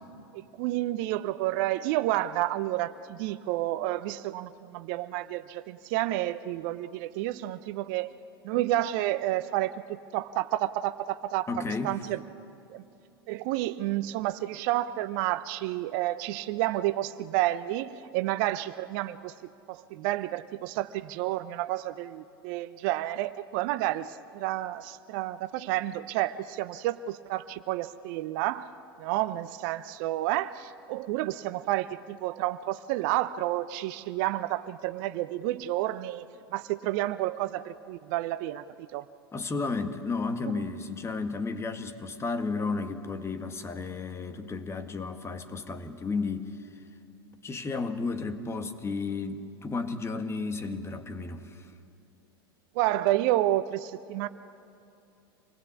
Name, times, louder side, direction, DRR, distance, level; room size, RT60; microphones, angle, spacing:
voice 1, 0.3-8.1 8.4-11.5 11.8-12.2 12.7-12.8 13.3-19.3 19.7-28.7 29.0-36.2 36.5-39.1 52.7-54.3, right 15 dB, 55° right, 13 dB, 0.8 m, -30 dB
voice 2, 11.5-12.0 39.3-46.6 47.4-51.7, left 4 dB, 20° left, 8 dB, 1.8 m, -33 dB
27.0 x 20.0 x 8.4 m, 2.5 s
hypercardioid pair, 85°, 13 cm